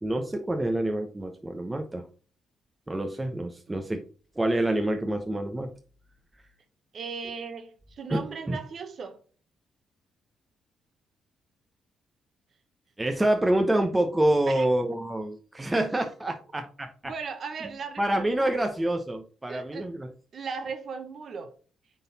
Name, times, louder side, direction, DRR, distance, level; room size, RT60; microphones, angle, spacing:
voice 1, 0.0-2.0 2.9-4.0 4.4-5.7 8.1-8.6 13.0-17.1 18.0-20.1, right 1 dB, 15° right, 0.9 m, -27 dB
voice 2, 6.9-9.2 14.5-14.7 16.3-16.4 17.0-18.7 19.5-19.9 20.3-21.6, right 5 dB, 50° right, 1.0 m, -37 dB
8.9 x 3.9 x 4.1 m
cardioid pair, 90°, 0 cm